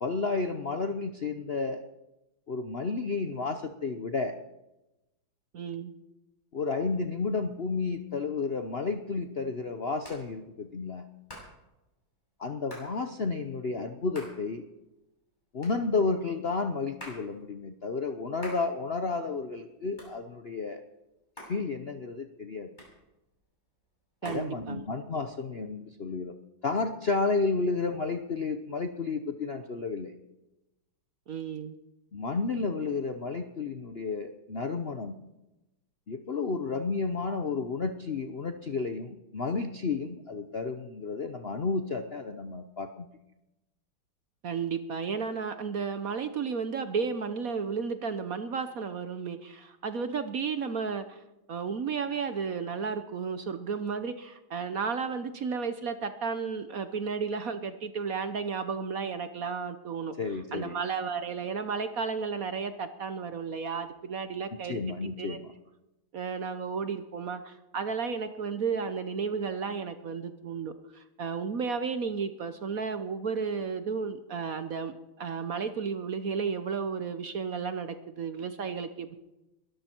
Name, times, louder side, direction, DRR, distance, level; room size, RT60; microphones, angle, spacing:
voice 1, 0.0-1.8 2.5-4.4 6.5-11.0 12.4-14.7 15.5-20.8 21.5-22.7 24.2-26.4 26.6-30.1 32.1-35.2 36.1-43.0 60.2-60.8 64.6-65.5, left 4 dB, 50° left, 8 dB, 0.7 m, -32 dB
voice 2, 5.5-5.9 24.2-24.8 31.3-31.8 44.4-51.2 51.5-60.1 60.5-64.8 65.2-65.4 66.1-79.2, right 5 dB, 55° right, 10 dB, 1.1 m, -33 dB
Hands, 8.5-25.2, equal, 20° left, 7.3 m, -51 dB
22.0 x 13.5 x 4.5 m, 0.96 s
omnidirectional pair, 2.2 m